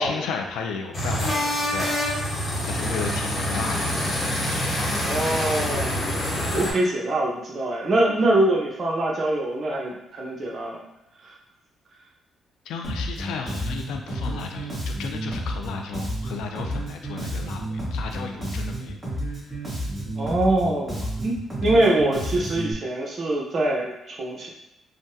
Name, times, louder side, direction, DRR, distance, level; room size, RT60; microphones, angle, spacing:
voice 1, 0.0-2.1 2.6-4.0 12.7-19.0 19.3-19.5 21.7-21.8, left 5 dB, 85° left, 3 dB, 0.4 m, -34 dB
sound 1, 0.9-6.7, left 1 dB, 40° left, 1.0 m, -26 dB
voice 2, 5.0-6.0 6.5-10.8 11.2-11.3 20.2-24.5, right 1 dB, 45° right, -2 dB, 0.7 m, -24 dB
Bass guitar, 12.8-22.7, right 1 dB, 20° right, 1.4 m, -31 dB
3.7 x 2.1 x 2.7 m, 0.91 s
cardioid pair, 90°, 0 cm